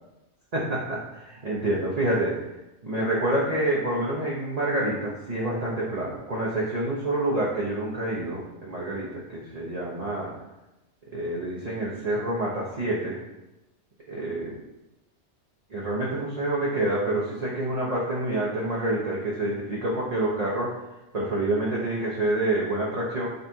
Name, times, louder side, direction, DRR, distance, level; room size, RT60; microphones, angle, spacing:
voice 1, 0.5-2.4 2.8-10.3 11.1-13.2 14.1-14.6 15.7-20.7 21.1-23.3, right 1 dB, 35° right, -6 dB, 1.3 m, -27 dB
8.1 x 4.2 x 4.6 m, 0.97 s
omnidirectional pair, 1.2 m